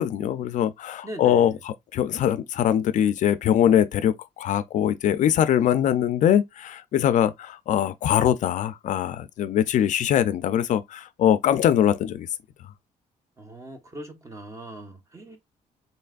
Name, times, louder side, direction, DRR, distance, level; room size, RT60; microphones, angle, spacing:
voice 1, 0.0-12.3, left 10 dB, 60° left, 0.4 m, -22 dB
voice 2, 1.0-1.6 13.4-15.4, right 1 dB, 20° right, 0.9 m, -40 dB
4.1 x 3.2 x 2.3 m
cardioid pair, 140°, 14 cm